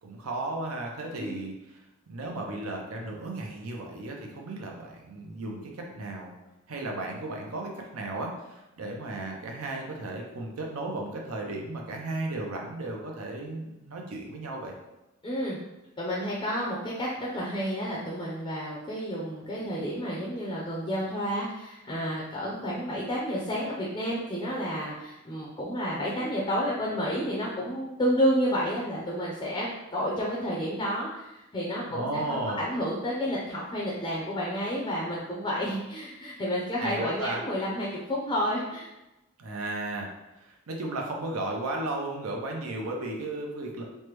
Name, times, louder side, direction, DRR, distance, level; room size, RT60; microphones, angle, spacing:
voice 1, 0.0-1.8 2.1-6.3 6.7-14.7 31.9-32.6 36.8-37.4 39.4-40.1 40.4-43.8, right 2 dB, 75° right, 1 dB, 0.6 m, -34 dB
voice 2, 15.2-15.6 16.0-38.9, equal, 20° left, -5 dB, 0.5 m, -30 dB
3.3 x 2.1 x 3.0 m, 0.97 s
head